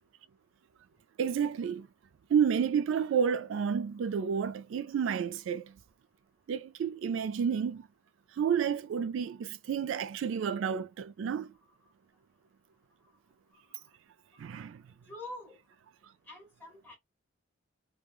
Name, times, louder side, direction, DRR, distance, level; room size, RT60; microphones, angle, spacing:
voice 1, 1.2-1.9 2.3-5.7 6.5-7.9 8.4-11.5 14.4-14.8, right 7 dB, 75° right, 0.3 m, -30 dB
voice 2, 15.1-15.6 16.3-17.0, left 1 dB, 10° left, 1.5 m, -45 dB
3.0 x 2.3 x 2.3 m
head